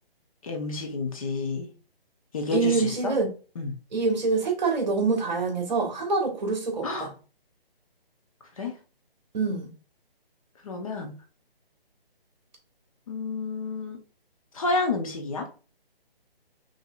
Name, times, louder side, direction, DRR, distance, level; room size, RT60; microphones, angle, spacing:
voice 1, 0.4-1.7 2.3-3.1 3.6-3.7 6.8-7.1 8.6-8.7 10.6-11.1 13.1-14.0 14.5-15.4, left 3 dB, 35° left, 0.8 m, -30 dB
voice 2, 2.5-3.3 3.9-7.1 9.3-9.7, right 4 dB, 45° right, 1.5 m, -25 dB
5.6 x 2.9 x 2.4 m
hypercardioid pair, 155°, 30 cm